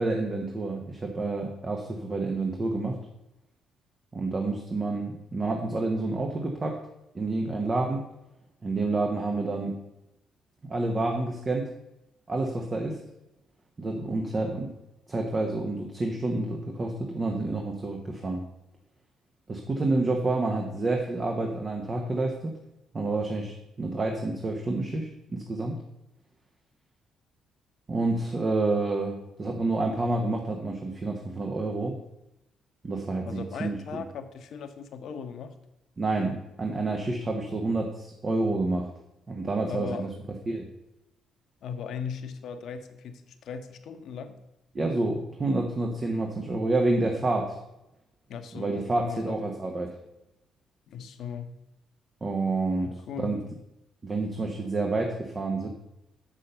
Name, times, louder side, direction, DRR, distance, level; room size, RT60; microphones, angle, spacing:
voice 1, 0.0-3.0 4.1-6.8 7.1-8.0 8.6-9.8 10.6-11.7 12.3-13.0 13.8-14.7 15.1-18.4 19.5-22.5 22.9-23.5 23.8-25.8 27.9-32.0 32.8-34.0 36.0-38.9 39.3-40.1 40.5-40.7 44.7-47.6 48.5-49.9 52.2-53.4 54.0-55.7, right 2 dB, 35° right, 2 dB, 1.1 m, -29 dB
voice 2, 33.2-35.5 39.7-40.1 41.6-44.4 48.3-49.5 50.9-51.6 52.8-53.4, left 6 dB, 70° left, 8 dB, 0.9 m, -38 dB
6.7 x 6.2 x 5.6 m, 0.90 s
supercardioid pair, 65°, 0 cm